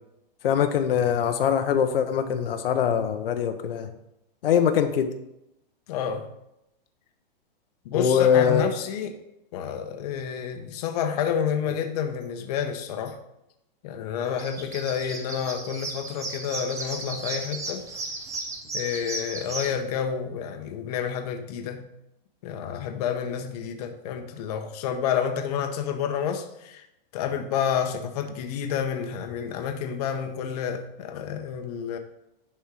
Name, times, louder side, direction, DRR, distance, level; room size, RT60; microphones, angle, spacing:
voice 1, 0.4-3.9 4.4-5.1 7.9-8.7, left 8 dB, 75° left, 7 dB, 0.9 m, -22 dB
voice 2, 5.9-6.2 7.8-9.2 9.5-13.2 13.8-17.9 18.7-21.9 22.4-26.8 27.1-32.0, left 8 dB, 45° left, 5 dB, 0.9 m, -29 dB
sound 1, 14.3-19.7, right 3 dB, 10° right, 0.8 m, -35 dB
10.5 x 4.4 x 4.8 m, 0.84 s
hypercardioid pair, 160°, 29 cm